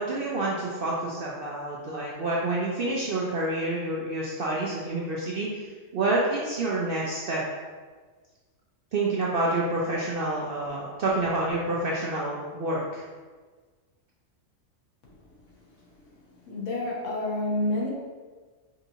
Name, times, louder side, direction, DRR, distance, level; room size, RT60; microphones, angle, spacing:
voice 1, 0.0-7.4 8.9-13.0, right 2 dB, 60° right, -4 dB, 0.6 m, -28 dB
voice 2, 15.5-15.9 16.3-17.9, left 1 dB, 65° left, -4 dB, 1.2 m, -30 dB
5.0 x 2.7 x 2.7 m, 1.4 s
omnidirectional pair, 1.4 m